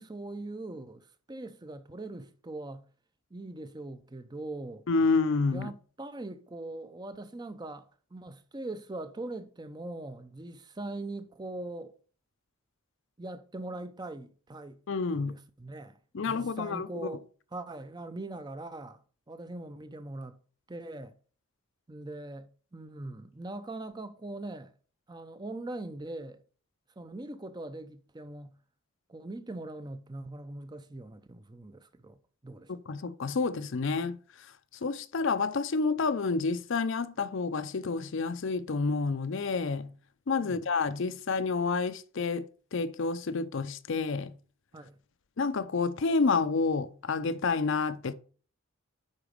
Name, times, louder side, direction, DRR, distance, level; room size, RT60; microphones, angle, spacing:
voice 1, 0.0-2.8 3.3-4.9 5.5-11.9 13.2-14.8 15.1-16.0 16.3-17.2 17.5-19.0 19.3-20.4 20.7-21.1 21.9-24.7 25.1-26.4 27.0-28.6 29.1-32.7 40.4-40.6 44.7-45.0, right 2 dB, 20° right, 0.5 m, -41 dB
voice 2, 4.9-5.7 14.9-15.4 16.1-17.1 32.7-34.2 34.8-39.9 40.3-42.5 42.7-44.3 45.4-48.1, left 4 dB, 55° left, 0.5 m, -29 dB
9.8 x 4.0 x 5.1 m
head